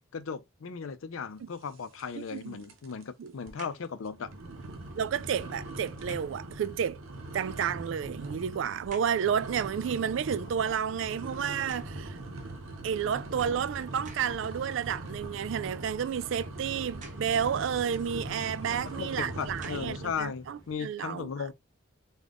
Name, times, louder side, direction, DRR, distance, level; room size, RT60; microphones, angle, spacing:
voice 1, 0.1-4.3 18.7-21.5, left 6 dB, 85° left, 0.5 m, -37 dB
sound 1, 2.0-2.4 2.6-3.0 3.5-3.6 4.1-20.3, right 2 dB, 85° right, 0.7 m, -41 dB
voice 2, 2.2-2.6 3.2-3.3 5.0-7.0 7.3-12.2 12.8-21.3, right 8 dB, 70° right, 0.3 m, -31 dB
sound 2, 3.4-3.9 5.9-6.4 7.8-9.3 9.7-12.2 12.9-13.0 13.8-14.5 16.8-17.4 18.5-18.6 19.3-20.1 20.7-20.8, right 3 dB, 35° right, 0.7 m, -52 dB
sound 3, 10.5-20.8, equal, 15° left, 1.3 m, -57 dB
3.5 x 2.3 x 3.6 m
head